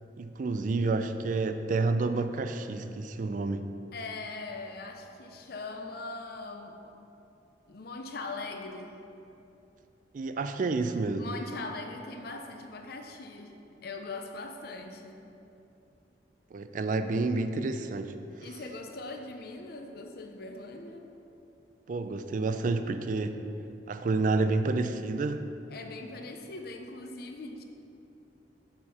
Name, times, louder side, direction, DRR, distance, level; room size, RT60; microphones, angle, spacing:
voice 1, 0.2-3.7 10.1-11.2 16.5-18.1 21.9-23.4 23.9-25.4, right 3 dB, 45° right, 9 dB, 0.4 m, -29 dB
voice 2, 3.9-6.9 7.7-9.0 11.2-15.2 18.4-21.1 25.7-27.6, left 3 dB, 60° left, 4 dB, 0.6 m, -41 dB
6.6 x 4.4 x 5.5 m, 2.8 s
head